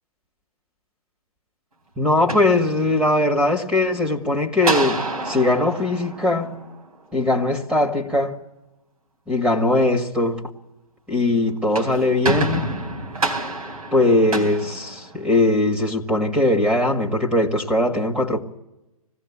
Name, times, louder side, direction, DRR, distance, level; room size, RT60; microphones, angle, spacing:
voice 1, 2.0-6.6 7.1-8.4 9.3-10.4 11.1-12.7 13.9-18.4, left 2 dB, 5° right, 1.9 m, -20 dB
sound 1, 2.1-3.3 4.6-7.1 11.5-15.6, right 2 dB, 80° right, 4.1 m, -28 dB
20.5 x 16.0 x 8.6 m
hypercardioid pair, 130°, 19 cm